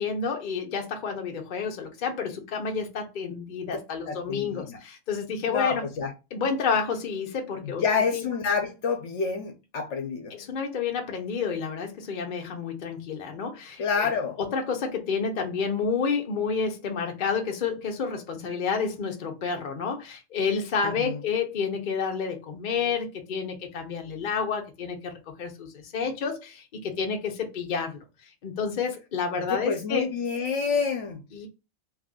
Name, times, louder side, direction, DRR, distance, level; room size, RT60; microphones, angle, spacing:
voice 1, 0.0-5.8 6.3-8.2 10.3-14.1 14.4-28.0 28.4-30.1 31.3-31.5, left 5 dB, 45° left, 0.8 m, -30 dB
voice 2, 4.1-4.8 5.5-6.1 7.8-10.3 13.8-14.4 20.8-21.2 29.4-31.2, left 5 dB, 70° left, 1.0 m, -28 dB
3.2 x 2.5 x 3.7 m
omnidirectional pair, 1.3 m